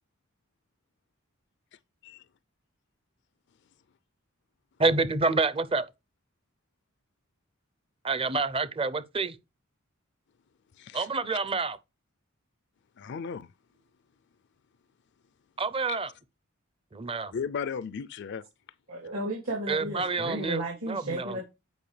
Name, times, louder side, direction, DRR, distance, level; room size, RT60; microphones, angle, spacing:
voice 1, 4.8-5.9 8.0-9.4 10.9-11.8 15.6-16.1 16.9-17.3 19.7-20.6 20.9-21.4, right 3 dB, 25° right, 0.6 m, -28 dB
voice 2, 10.8-11.1 13.0-13.5 15.9-16.0 17.3-18.4, left 6 dB, 55° left, 0.4 m, -35 dB
voice 3, 18.9-21.4, right 1 dB, 75° right, 3.0 m, -33 dB
9.0 x 5.4 x 3.3 m
head